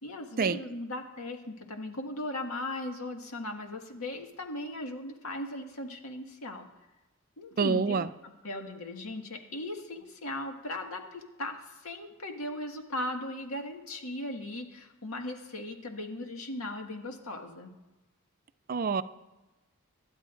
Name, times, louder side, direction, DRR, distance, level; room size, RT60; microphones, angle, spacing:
voice 1, 0.0-6.7 7.4-8.0 8.4-17.7, left 1 dB, 90° left, 2 dB, 1.8 m, -38 dB
voice 2, 7.6-8.1 18.7-19.0, right 5 dB, 40° right, 14 dB, 0.4 m, -27 dB
25.5 x 12.0 x 2.6 m, 1.1 s
head